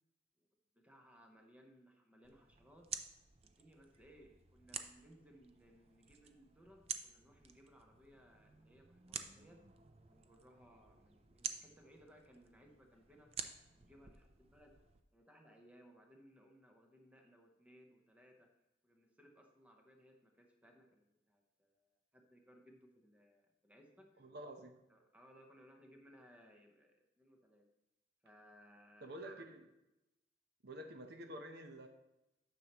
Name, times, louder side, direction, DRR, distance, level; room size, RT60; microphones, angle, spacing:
voice 1, 0.7-3.1 3.4-9.7 10.1-13.3 13.7-14.8 15.1-18.5 18.8-24.3 24.9-27.6 28.2-29.1, equal, 10° right, 2 dB, 0.9 m, -64 dB
sound 1, 2.2-15.0, right 7 dB, 35° right, 0.5 m, -50 dB
voice 2, 24.2-24.7 29.0-29.7 30.6-31.9, right 1 dB, 60° right, 5 dB, 0.8 m, -49 dB
9.8 x 6.7 x 3.0 m, 0.93 s
head